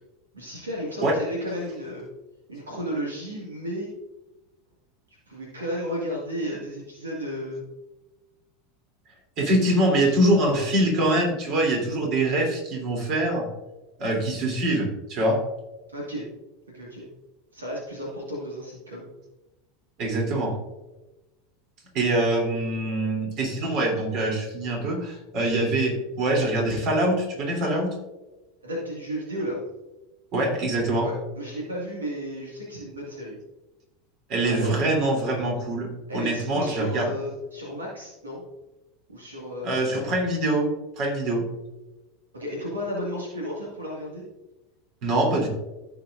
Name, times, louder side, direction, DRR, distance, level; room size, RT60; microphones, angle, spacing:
voice 1, 0.3-2.1 2.5-3.9 5.3-7.6 15.9-16.3 16.7-17.0 17.5-19.1 28.6-29.6 30.9-33.4 34.4-34.8 36.1-38.4 39.1-40.1 42.3-44.2, equal, 85° right, -3 dB, 1.9 m, -33 dB
voice 2, 9.4-13.5 14.0-15.4 20.0-20.5 21.9-27.9 30.3-31.1 34.3-37.1 39.6-41.5 45.0-45.5, right 1 dB, 50° right, 0 dB, 3.2 m, -24 dB
15.5 x 5.9 x 2.6 m, 1.0 s
figure-of-eight pair, 85°, 0 cm